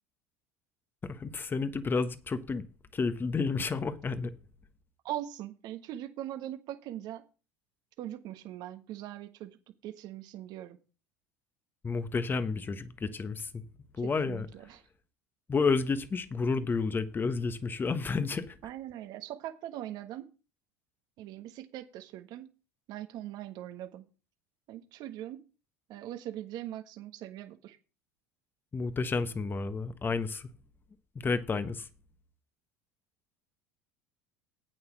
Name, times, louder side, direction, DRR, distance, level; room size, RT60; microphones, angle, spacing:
voice 1, 1.0-2.6 2.9-4.3 11.8-13.6 14.0-14.5 15.5-18.6 28.7-30.5 31.2-31.9, left 4 dB, 25° left, 1.3 m, -31 dB
voice 2, 5.0-7.2 8.0-9.6 9.8-10.8 14.0-14.8 18.6-20.3 21.2-22.5 22.9-24.0 24.7-25.4 25.9-27.8, right 12 dB, 60° right, 1.4 m, -41 dB
8.7 x 7.8 x 6.2 m
hypercardioid pair, 80°, 8 cm